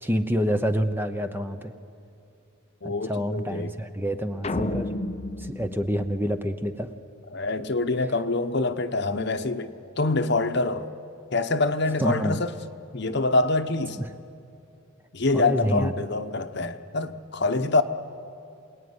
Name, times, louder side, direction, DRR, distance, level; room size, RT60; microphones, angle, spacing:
voice 1, 0.0-1.7 2.8-4.9 5.4-6.9 12.0-12.4 15.3-15.9, equal, 10° right, 0.8 m, -27 dB
voice 2, 2.8-3.7 7.3-10.9 11.3-12.5 12.9-14.0 15.1-17.8, left 3 dB, 55° left, 1.0 m, -25 dB
sound 1, 4.4-6.9, left 1 dB, 30° left, 0.7 m, -32 dB
27.5 x 19.0 x 9.7 m
head